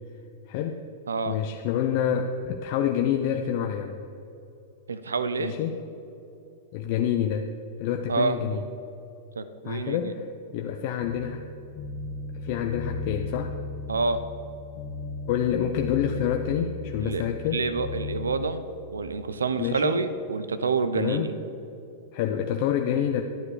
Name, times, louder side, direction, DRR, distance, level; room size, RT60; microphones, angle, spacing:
voice 1, 0.5-0.8 1.3-4.0 5.4-5.8 6.7-7.5 7.8-8.6 9.6-10.3 10.5-11.4 12.3-13.5 15.3-17.6 19.6-20.0 20.9-21.3 22.1-23.2, left 9 dB, 55° left, 5 dB, 0.7 m, -27 dB
voice 2, 1.1-1.4 4.9-5.5 8.1-8.4 9.4-10.1 13.9-14.2 17.0-17.3 17.5-18.6 18.9-21.3, right 4 dB, 90° right, 11 dB, 0.7 m, -27 dB
sound 1, 11.0-18.5, left 3 dB, 35° left, 1.6 m, -36 dB
11.5 x 9.7 x 4.9 m, 2.9 s
hypercardioid pair, 110°, 0 cm